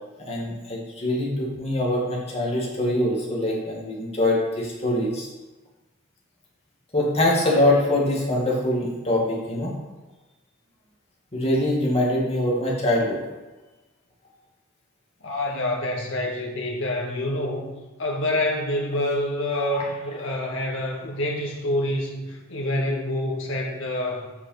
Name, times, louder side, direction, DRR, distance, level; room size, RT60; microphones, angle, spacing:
voice 1, 0.3-5.3 6.9-9.7 11.3-13.2 19.7-19.8, left 1 dB, 30° left, -4 dB, 2.4 m, -23 dB
voice 2, 15.2-17.7 18.0-24.3, left 1 dB, 65° left, -1 dB, 1.9 m, -27 dB
8.1 x 6.1 x 6.0 m, 1.1 s
head